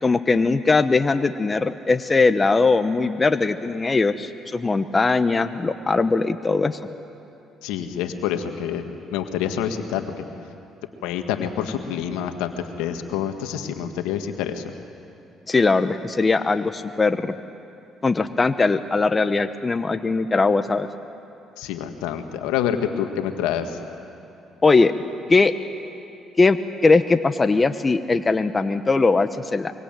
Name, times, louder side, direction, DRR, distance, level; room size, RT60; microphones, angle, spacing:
voice 1, 0.0-6.8 15.5-17.3 18.0-20.9 24.6-24.9 25.3-25.5 26.4-26.6 26.8-29.7, left 3 dB, 30° left, 10 dB, 1.1 m, -20 dB
voice 2, 7.6-8.8 9.1-10.2 11.0-14.7 21.6-23.8, left 9 dB, 80° left, 6 dB, 1.8 m, -27 dB
24.0 x 23.5 x 9.2 m, 2.7 s
hypercardioid pair, 55°, 0 cm